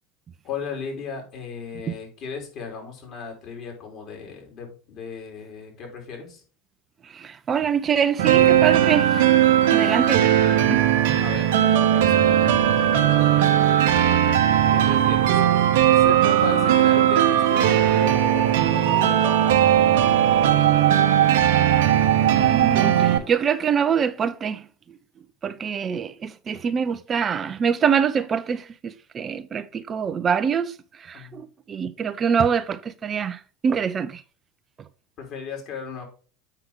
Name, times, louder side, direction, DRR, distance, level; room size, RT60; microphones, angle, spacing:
voice 1, 0.4-6.4 9.6-9.9 11.2-12.4 13.3-14.1 14.7-15.4 15.9-19.5 31.1-31.4 35.2-36.0, left 5 dB, 50° left, 4.0 m, -36 dB
voice 2, 7.0-9.2 9.7-10.2 10.7-10.8 22.3-24.7 25.4-34.2, right 7 dB, 35° right, 0.6 m, -25 dB
sound 1, 8.2-23.2, right 11 dB, 70° right, 1.1 m, -18 dB
7.9 x 5.9 x 3.6 m
hypercardioid pair, 80°, 0 cm